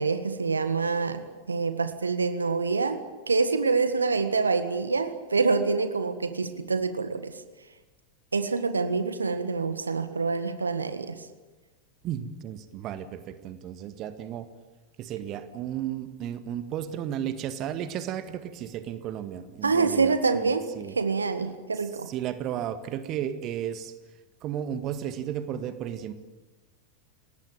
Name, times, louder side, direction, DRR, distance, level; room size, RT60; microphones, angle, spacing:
voice 1, 0.0-3.0 3.3-7.4 8.3-11.3 19.6-20.7 21.0-22.1, right 4 dB, 75° right, 10 dB, 1.6 m, -26 dB
voice 2, 12.0-14.5 15.0-20.9 22.1-23.9 24.4-26.1, right 10 dB, 35° right, 11 dB, 1.8 m, -34 dB
29.0 x 18.5 x 9.0 m, 1.2 s
figure-of-eight pair, 90°, 0 cm